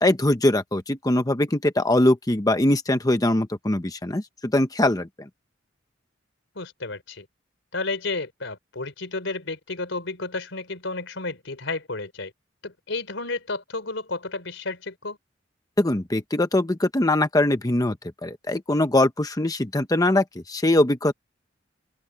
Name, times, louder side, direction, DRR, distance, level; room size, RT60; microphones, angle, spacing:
voice 1, 0.0-5.3 15.8-18.0 18.2-21.1, left 1 dB, 20° left, 0.9 m, -22 dB
voice 2, 6.6-7.3 7.7-12.3 12.6-15.2, left 3 dB, 80° left, 3.6 m, -32 dB
open air
head